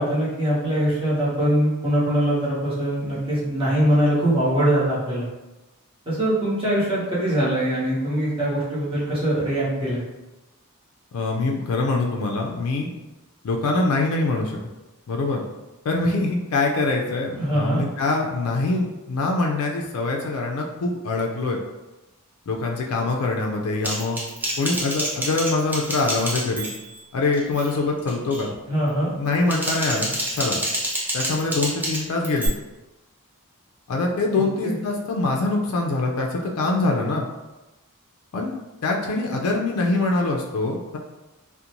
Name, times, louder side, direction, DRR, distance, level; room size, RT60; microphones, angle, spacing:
voice 1, 0.0-5.3 6.1-10.0 17.3-17.8 28.7-29.1 34.3-34.8, right 1 dB, 25° right, -8 dB, 0.9 m, -22 dB
voice 2, 11.1-12.9 13.4-14.6 15.1-15.4 15.9-21.6 22.5-24.2 24.6-26.7 27.1-28.5 29.2-30.6 31.1-32.5 33.9-37.2 38.3-38.5 38.8-41.0, left 3 dB, 70° left, 0 dB, 0.3 m, -24 dB
Typing, 23.8-27.0 27.3-27.7 28.1-28.5 29.3-32.5, right 1 dB, 10° right, 0.4 m, -28 dB
2.5 x 2.1 x 2.8 m, 1.1 s
head